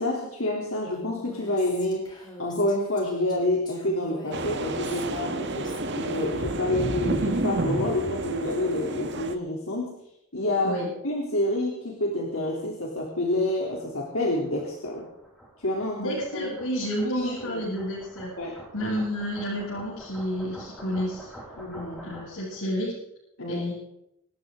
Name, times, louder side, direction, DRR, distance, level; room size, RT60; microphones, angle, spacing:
voice 1, 0.0-9.9 10.3-15.0 15.6-16.5 17.0-17.6 18.4-18.6 21.6-22.0 23.4-23.7, left 1 dB, 65° left, -2 dB, 3.2 m, -28 dB
Female speech woman speaking, 0.9-6.3, left 1 dB, 20° left, 3.4 m, -46 dB
sound 1, 4.3-9.3, right 2 dB, 50° right, 1.5 m, -30 dB
sound 2, 12.6-22.6, right 1 dB, 5° left, 6.2 m, -47 dB
voice 2, 16.0-18.3 18.7-21.3 22.0-22.9 23.5-23.7, equal, 85° left, -7 dB, 7.7 m, -30 dB
26.5 x 13.0 x 3.8 m, 0.77 s
head